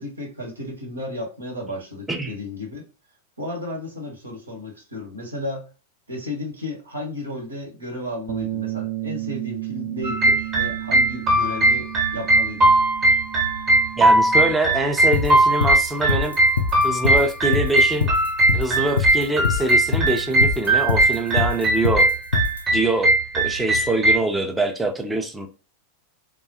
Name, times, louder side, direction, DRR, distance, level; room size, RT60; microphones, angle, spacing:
voice 1, 0.0-2.9 3.4-5.7 6.1-12.7, left 1 dB, 80° right, 0 dB, 1.0 m, -33 dB
Bass guitar, 8.3-14.5, right 18 dB, 50° right, 0.6 m, -33 dB
sound 1, 10.0-24.2, right 1 dB, 25° right, 0.9 m, -19 dB
voice 2, 14.0-16.3 16.8-18.1 18.5-22.1 22.7-25.5, right 2 dB, 5° right, 4 dB, 0.5 m, -24 dB
sound 2, 15.1-22.6, left 5 dB, 75° left, 0.3 m, -23 dB
3.3 x 2.2 x 2.8 m, 0.33 s
figure-of-eight pair, 90°, 0 cm